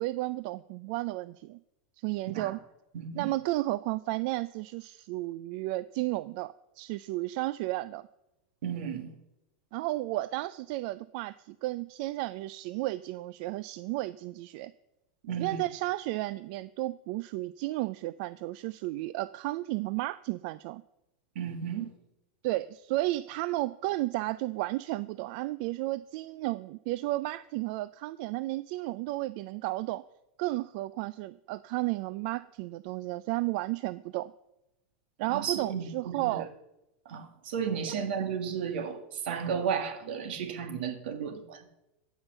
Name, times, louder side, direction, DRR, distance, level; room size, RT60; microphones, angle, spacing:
voice 1, 0.0-1.6 2.0-2.6 3.2-8.1 9.7-14.7 15.4-20.8 22.4-30.0 30.4-34.3 35.2-36.5, right 18 dB, 50° right, 16 dB, 0.3 m, -33 dB
voice 2, 2.9-3.3 8.6-9.1 15.2-15.6 21.4-21.9 35.3-36.4 37.1-41.6, right 7 dB, 70° right, 8 dB, 1.9 m, -34 dB
15.0 x 5.7 x 6.7 m, 0.92 s
supercardioid pair, 140°, 6 cm